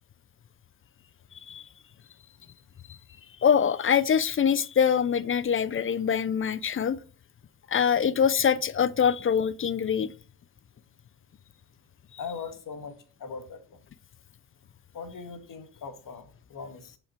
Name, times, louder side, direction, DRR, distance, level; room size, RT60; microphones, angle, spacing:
voice 1, 3.4-7.0 7.7-10.1, left 7 dB, 30° left, 0.5 m, -24 dB
voice 2, 12.2-12.9 13.2-13.8 14.9-17.0, left 5 dB, 50° left, 1.7 m, -40 dB
7.1 x 5.8 x 4.4 m
supercardioid pair, 70°, 41 cm